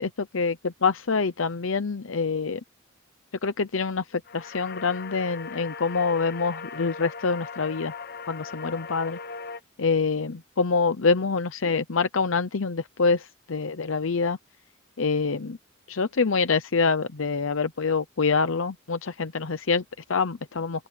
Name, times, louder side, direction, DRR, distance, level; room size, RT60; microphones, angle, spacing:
voice 1, 0.0-2.6 3.4-7.9 8.3-9.2 9.8-14.4 15.0-15.6 15.9-19.8 20.1-20.9, left 4 dB, 85° left, 0.8 m, -26 dB
sound 1, 4.3-9.6, left 5 dB, 50° left, 1.0 m, -39 dB
open air
head